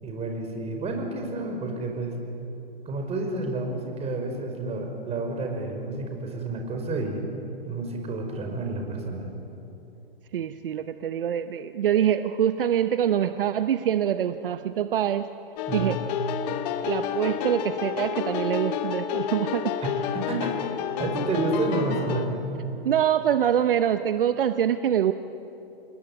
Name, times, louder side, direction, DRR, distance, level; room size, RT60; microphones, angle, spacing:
voice 1, 0.0-2.2 2.9-7.2 7.6-9.3 15.7-16.0 19.8-22.4, right 3 dB, 20° right, 3 dB, 5.3 m, -30 dB
voice 2, 10.3-15.3 15.7-16.0 16.8-19.7 22.8-25.1, right 10 dB, 65° right, 10 dB, 1.0 m, -24 dB
sound 1, 15.6-22.3, left 9 dB, 45° left, 2.0 m, -30 dB
28.0 x 21.5 x 8.8 m, 2.9 s
figure-of-eight pair, 115°, 30 cm